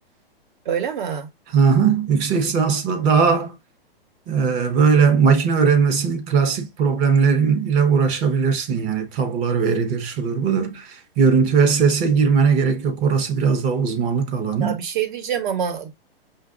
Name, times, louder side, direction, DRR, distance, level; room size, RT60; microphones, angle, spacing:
voice 1, 0.6-1.3 2.1-2.2 14.6-15.9, right 8 dB, 55° right, 1.2 m, -26 dB
voice 2, 1.5-3.5 4.3-14.8, right 5 dB, 25° right, 0.8 m, -19 dB
6.1 x 2.5 x 2.4 m
hypercardioid pair, 145°, 30 cm